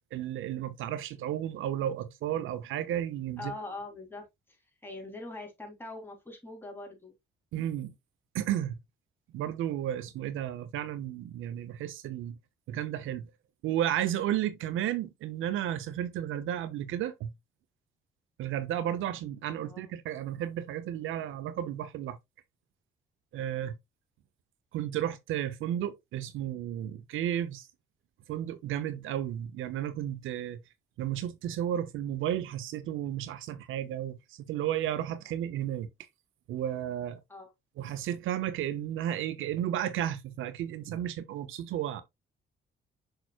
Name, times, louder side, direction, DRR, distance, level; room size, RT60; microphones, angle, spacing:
voice 1, 0.1-3.5 7.5-7.9 8.3-8.7 9.3-12.4 12.7-13.3 13.6-17.3 18.4-22.2 23.3-23.7 24.7-27.7 28.3-30.6 31.0-35.9 36.5-37.2 37.8-42.0, right 11 dB, 85° right, 0.8 m, -33 dB
voice 2, 3.4-4.6 4.8-7.1 19.6-19.9 37.3-37.5, left 2 dB, 10° left, 3.6 m, -43 dB
6.7 x 6.0 x 2.4 m
cardioid pair, 90°, 20 cm